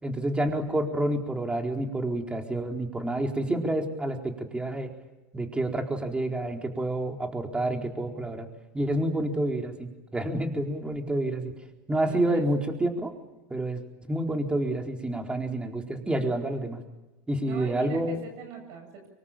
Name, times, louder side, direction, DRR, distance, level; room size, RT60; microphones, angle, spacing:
voice 1, 0.0-4.9 5.3-8.5 8.7-11.5 11.9-13.1 13.5-13.8 14.1-16.8 17.3-18.2, right 1 dB, 10° right, 3 dB, 4.3 m, -28 dB
voice 2, 12.1-12.4 17.4-19.1, right 5 dB, 55° right, 3 dB, 7.4 m, -41 dB
25.0 x 23.5 x 8.8 m, 1.1 s
hypercardioid pair, 100°, 9 cm